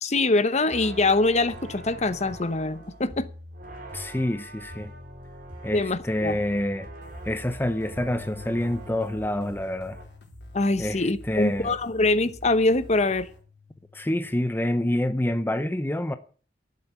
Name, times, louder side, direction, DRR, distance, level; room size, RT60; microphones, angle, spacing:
voice 1, 0.0-3.3 5.7-6.4 10.5-13.3, left 2 dB, 40° left, 1.0 m, -24 dB
sound 1, 0.5-10.0, right 1 dB, 55° right, 4.9 m, -43 dB
voice 2, 3.9-4.9 5.6-6.9 7.2-10.0 10.8-11.7 13.9-16.2, left 1 dB, 10° left, 0.7 m, -27 dB
sound 2, 7.0-13.4, equal, 80° left, 4.3 m, -48 dB
sound 3, 8.0-14.3, left 5 dB, 70° right, 7.2 m, -50 dB
12.0 x 9.3 x 8.2 m
head